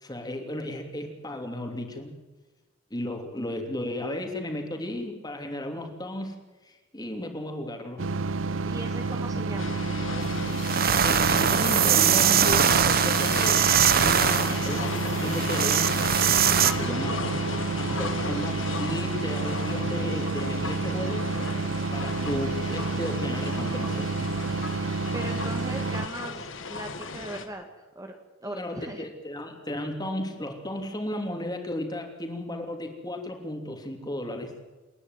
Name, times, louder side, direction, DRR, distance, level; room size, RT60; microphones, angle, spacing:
voice 1, 0.0-2.2 2.9-6.3 6.6-8.0 11.0-13.6 13.9-15.9 16.6-17.4 17.8-21.3 21.9-24.3 28.4-34.5, left 1 dB, 20° left, 4 dB, 3.1 m, -34 dB
sound 1, 8.0-26.1, right 3 dB, 75° right, 0.7 m, -30 dB
voice 2, 8.4-9.9 16.8-17.3 25.1-28.1 28.4-29.1, right 1 dB, 20° right, 4 dB, 1.9 m, -39 dB
sound 2, 9.6-27.5, left 4 dB, 70° left, 1.9 m, -35 dB
sound 3, 10.2-10.3 10.6-16.7, right 8 dB, 50° right, 1.1 m, -22 dB
28.5 x 10.5 x 9.5 m, 1.2 s
head